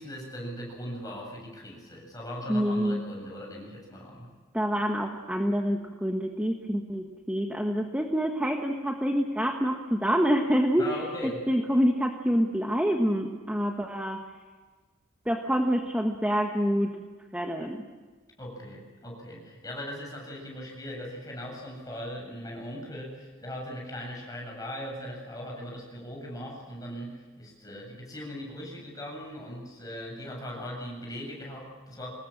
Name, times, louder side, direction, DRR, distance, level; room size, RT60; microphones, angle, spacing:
voice 1, 0.0-4.3 10.8-11.6 18.4-32.1, equal, 15° left, -1 dB, 7.8 m, -39 dB
voice 2, 2.5-3.0 4.5-14.2 15.2-17.0 17.3-17.8, equal, 5° right, 2 dB, 1.4 m, -27 dB
25.5 x 20.5 x 7.4 m, 1.4 s
head